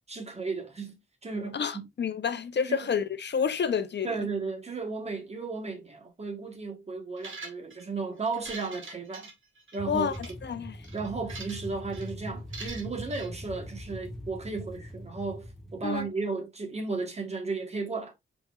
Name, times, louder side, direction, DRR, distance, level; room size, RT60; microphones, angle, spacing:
voice 1, 0.1-1.9 2.7-2.8 4.0-9.3 9.7-10.1 10.9-18.1, right 4 dB, 30° right, 1.2 m, -34 dB
voice 2, 1.5-4.2 9.9-10.1 10.4-10.8 15.8-16.1, left 7 dB, 60° left, 0.6 m, -29 dB
sound 1, 7.2-7.8 8.3-9.8 10.1-10.3 10.8-11.7 11.9-12.1 12.5-13.3, right 3 dB, 75° right, 1.6 m, -43 dB
sound 2, 9.8-16.1, equal, ahead, 1.2 m, -42 dB
5.1 x 4.4 x 2.3 m
wide cardioid pair, 145°, 20 cm